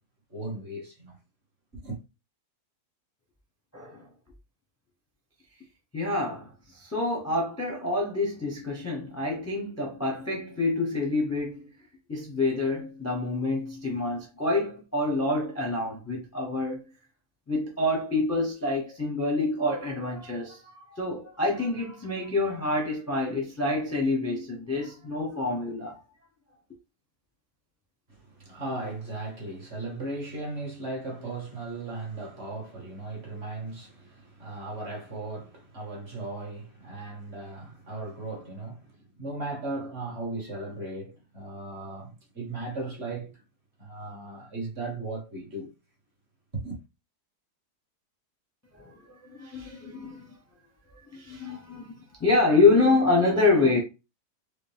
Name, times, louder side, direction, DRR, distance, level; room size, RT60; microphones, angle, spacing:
voice 1, 0.3-1.2 1.7-2.0 28.1-43.4 43.8-45.7 46.5-46.8, right 2 dB, 40° right, 1.6 m, -37 dB
voice 2, 3.7-4.1 5.9-6.5 6.7-11.7 12.1-16.8 17.5-20.6 20.9-25.9 48.8-48.9 49.4-50.3 51.1-53.8, left 2 dB, 15° left, 0.7 m, -26 dB
4.9 x 2.0 x 3.5 m
omnidirectional pair, 1.8 m